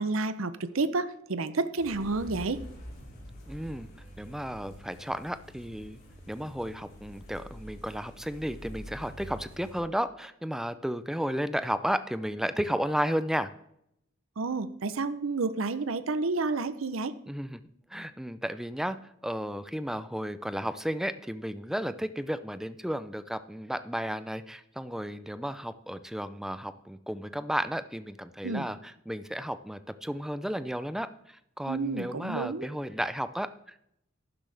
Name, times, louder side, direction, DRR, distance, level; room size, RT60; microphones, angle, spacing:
voice 1, 0.0-2.6 14.4-17.2 28.4-28.6 31.7-32.7, right 3 dB, 75° right, 13 dB, 0.7 m, -30 dB
sound 1, 1.8-9.8, equal, 50° left, 4.3 m, -46 dB
voice 2, 3.5-6.0 6.3-13.5 17.3-17.6 17.9-33.8, equal, ahead, 12 dB, 0.5 m, -33 dB
12.0 x 10.0 x 3.4 m, 0.75 s
head